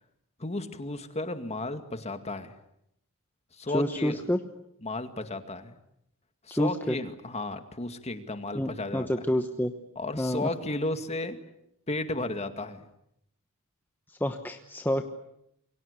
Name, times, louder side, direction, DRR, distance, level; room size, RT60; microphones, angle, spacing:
voice 1, 0.4-2.6 3.5-4.2 4.8-5.8 6.4-9.1 10.0-11.4 11.9-12.9, left 2 dB, 30° left, 8 dB, 2.1 m, -33 dB
voice 2, 3.7-4.4 6.5-7.0 8.5-9.7 10.2-10.5 14.1-15.0, left 1 dB, 10° left, 6 dB, 1.1 m, -28 dB
28.0 x 23.5 x 8.2 m, 0.78 s
head